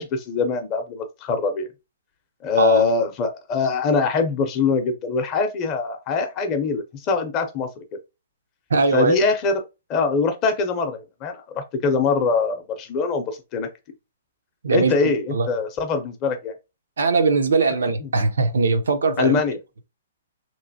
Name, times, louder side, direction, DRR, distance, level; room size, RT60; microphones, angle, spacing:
voice 1, 0.0-1.7 2.4-7.7 8.9-9.6 9.9-13.7 14.7-16.5 18.0-18.1 19.2-19.6, left 4 dB, 25° left, 0.5 m, -23 dB
voice 2, 8.7-9.2 14.6-15.5 17.0-19.4, right 4 dB, 90° right, 0.7 m, -20 dB
2.9 x 2.8 x 2.7 m
hypercardioid pair, 165°, 0 cm